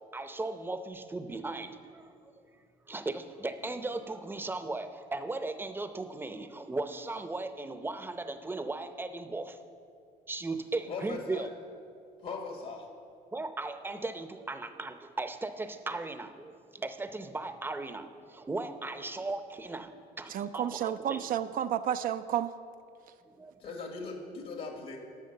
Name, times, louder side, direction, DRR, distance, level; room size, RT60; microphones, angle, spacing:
voice 1, 0.1-2.3 2.9-9.6 10.3-11.5 13.3-21.2 23.3-23.6, right 2 dB, 10° right, 9 dB, 0.6 m, -37 dB
voice 2, 10.9-11.5 12.2-12.9 23.6-25.0, left 4 dB, 60° left, 2 dB, 1.5 m, -39 dB
voice 3, 20.3-22.5, right 10 dB, 55° right, 10 dB, 0.4 m, -31 dB
12.0 x 6.4 x 6.5 m, 2.4 s
cardioid pair, 110°, 17 cm